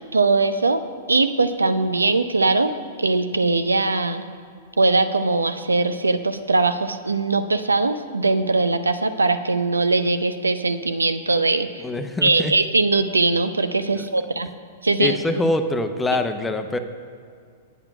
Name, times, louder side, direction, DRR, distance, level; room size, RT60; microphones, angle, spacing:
voice 1, 0.1-0.8 1.1-2.7 3.0-4.3 4.8-11.8 12.2-14.5 14.8-15.2, right 3 dB, 85° right, 11 dB, 0.6 m, -21 dB
voice 2, 11.8-12.5 13.9-14.0 15.0-16.8, left 2 dB, 10° left, 8 dB, 0.7 m, -24 dB
9.1 x 8.7 x 5.8 m, 2.2 s
figure-of-eight pair, 105°, 0 cm